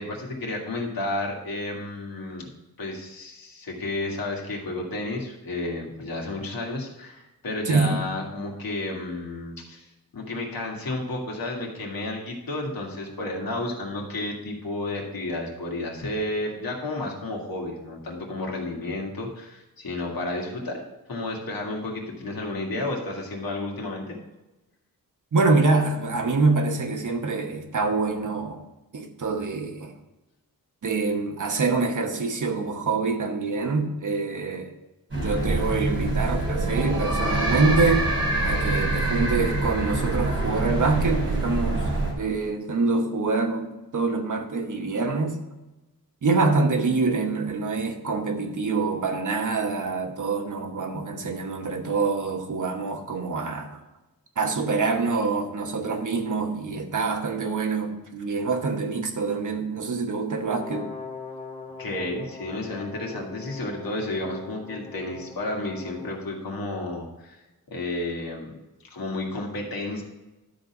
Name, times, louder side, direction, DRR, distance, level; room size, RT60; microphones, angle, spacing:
voice 1, 0.0-2.5 2.8-9.8 10.1-20.8 21.1-24.2 61.8-67.4 67.7-68.5 68.9-70.0, left 2 dB, 75° left, -1 dB, 2.1 m, -32 dB
voice 2, 7.6-8.0 25.3-28.6 28.9-29.9 30.8-34.7 35.2-38.1 38.4-41.9 42.2-45.4 46.2-53.8 54.4-60.9, right 3 dB, 55° right, 4 dB, 1.1 m, -25 dB
sound 1, 35.1-42.1, right 2 dB, 40° right, 2.9 m, -25 dB
Brass instrument, 60.4-66.2, left 4 dB, 20° left, 1.1 m, -41 dB
12.0 x 4.0 x 6.1 m, 1.0 s
wide cardioid pair, 160°, 36 cm